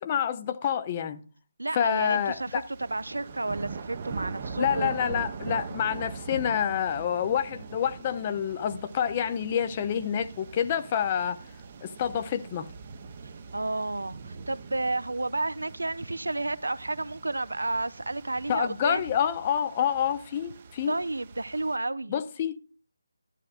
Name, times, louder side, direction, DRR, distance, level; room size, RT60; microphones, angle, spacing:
voice 1, 0.0-1.2 1.8-2.6 4.6-11.4 11.8-12.7 18.5-21.0 22.1-22.6, left 8 dB, 25° left, 0.5 m, -28 dB
voice 2, 1.6-5.0 13.2-19.1 20.9-22.2, right 2 dB, 65° right, 0.5 m, -31 dB
sound 1, 1.9-21.8, right 5 dB, 30° right, 0.7 m, -42 dB
12.5 x 11.0 x 2.5 m
figure-of-eight pair, 150°, 0 cm